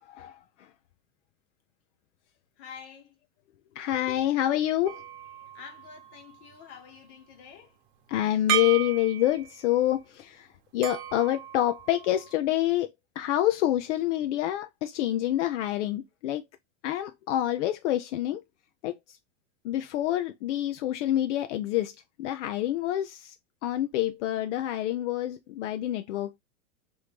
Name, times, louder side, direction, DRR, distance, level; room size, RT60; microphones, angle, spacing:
voice 1, 0.0-0.4 3.8-5.0 8.1-10.5 10.7-16.4 16.8-18.4 18.8-19.2 19.6-21.9 22.2-23.3 23.6-26.4, left 13 dB, 70° left, 0.5 m, -27 dB
voice 2, 2.6-3.2 5.5-7.8, left 7 dB, 45° left, 1.1 m, -47 dB
sound 1, 4.9-6.5 8.5-9.8 10.8-12.4, right 10 dB, 55° right, 0.9 m, -35 dB
3.1 x 2.6 x 3.3 m
supercardioid pair, 135°, 37 cm